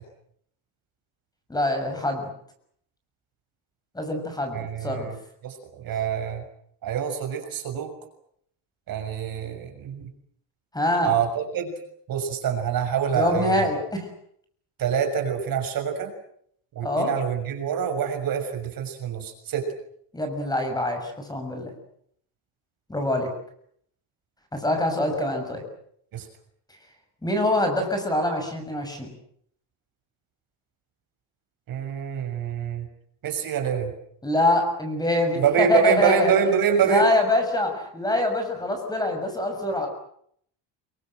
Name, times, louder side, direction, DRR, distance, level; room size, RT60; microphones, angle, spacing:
voice 1, 1.5-2.3 3.9-5.1 10.7-11.1 13.1-14.1 16.8-17.1 20.1-21.7 22.9-23.3 24.5-25.6 27.2-29.1 34.2-36.3 36.8-39.9, left 1 dB, 10° left, 5 dB, 6.6 m, -24 dB
voice 2, 4.5-5.1 5.4-6.4 6.8-7.9 8.9-10.0 11.0-11.7 12.1-13.7 14.8-16.1 16.7-19.6 26.1-26.3 31.7-32.8 33.2-33.9 35.4-37.0, right 7 dB, 50° right, 5 dB, 6.4 m, -25 dB
27.5 x 23.5 x 7.8 m, 0.67 s
cardioid pair, 170°, 43 cm